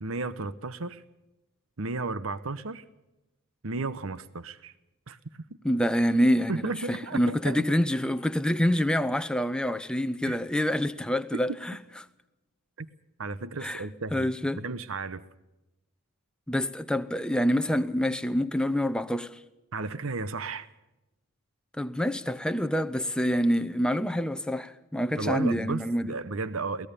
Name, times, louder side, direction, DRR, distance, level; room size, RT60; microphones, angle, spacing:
voice 1, 0.0-1.0 1.8-2.8 3.6-4.7 5.1-5.2 6.5-7.6 10.2-10.4 12.8-12.9 13.2-14.3 14.6-15.2 19.7-20.7 25.2-26.9, right 3 dB, 70° right, 0.9 m, -33 dB
voice 2, 5.6-11.8 13.6-13.8 14.1-14.6 16.5-19.4 21.8-26.1, equal, 5° left, 0.8 m, -26 dB
22.5 x 18.0 x 6.9 m
head